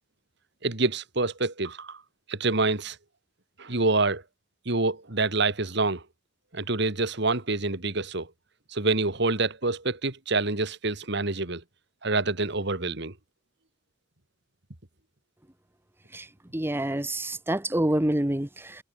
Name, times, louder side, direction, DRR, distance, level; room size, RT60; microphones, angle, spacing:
voice 1, 0.6-2.0 2.3-3.0 3.6-4.2 4.7-6.0 6.5-8.3 8.7-11.6 12.0-13.1, right 3 dB, 60° right, 2.5 m, -26 dB
voice 2, 16.5-18.8, right 1 dB, 10° right, 1.0 m, -27 dB
head